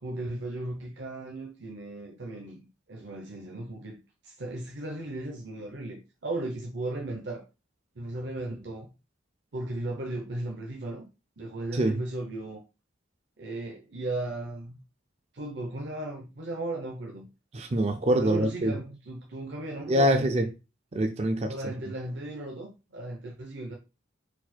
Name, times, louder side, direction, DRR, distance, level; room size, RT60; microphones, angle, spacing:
voice 1, 0.0-7.4 8.0-8.9 9.5-11.0 11.4-12.6 13.4-14.8 15.3-17.3 18.2-20.5 21.5-23.7, right 2 dB, 65° right, 0.8 m, -36 dB
voice 2, 17.5-18.7 19.9-20.5 20.9-21.5, right 1 dB, 35° right, 0.4 m, -24 dB
4.2 x 2.3 x 4.3 m
head